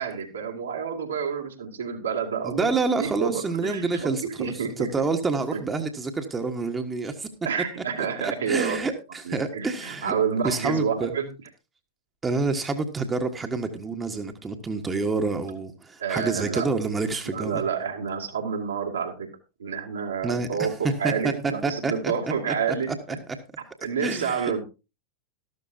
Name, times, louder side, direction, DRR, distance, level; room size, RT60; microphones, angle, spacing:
voice 1, 0.0-4.9 5.5-5.6 7.4-8.9 9.2-11.3 16.0-16.7 17.2-19.3 19.6-23.2 23.8-24.6, right 6 dB, 70° right, 1 dB, 2.5 m, -29 dB
voice 2, 2.4-7.3 8.0-10.2 10.4-11.1 12.2-17.6 20.2-22.5 22.9-23.2 24.0-24.5, right 3 dB, 15° right, 5 dB, 1.3 m, -28 dB
13.5 x 13.0 x 2.7 m, 0.29 s
figure-of-eight pair, 90°, 0 cm